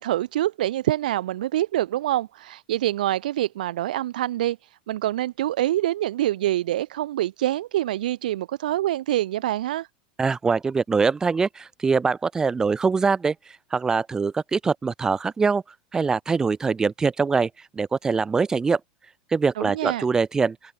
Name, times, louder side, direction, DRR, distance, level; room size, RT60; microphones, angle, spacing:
voice 1, 0.0-9.9 19.6-20.1, right 13 dB, 80° right, 1.8 m, -25 dB
voice 2, 10.2-13.4 13.7-15.6 15.9-18.8 19.3-20.6, right 5 dB, 15° right, 1.9 m, -23 dB
open air
supercardioid pair, 135°, 4 cm